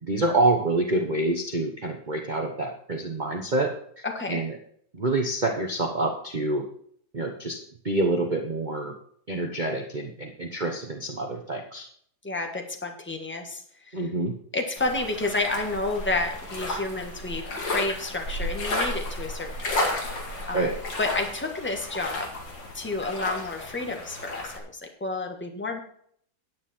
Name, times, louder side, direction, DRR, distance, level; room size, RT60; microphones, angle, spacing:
voice 1, 0.1-3.7 4.3-4.6 4.9-6.6 7.1-7.6 7.8-8.9 9.3-11.9 13.9-14.3 20.5-20.7, right 2 dB, 30° right, 2 dB, 1.0 m, -27 dB
voice 2, 4.0-4.4 12.2-14.1 14.5-20.7 21.0-22.3 22.7-25.8, left 2 dB, 5° left, 3 dB, 1.4 m, -30 dB
sound 1, 14.8-24.6, left 1 dB, 90° left, 2.9 m, -33 dB
9.6 x 9.5 x 4.4 m, 0.62 s
omnidirectional pair, 1.9 m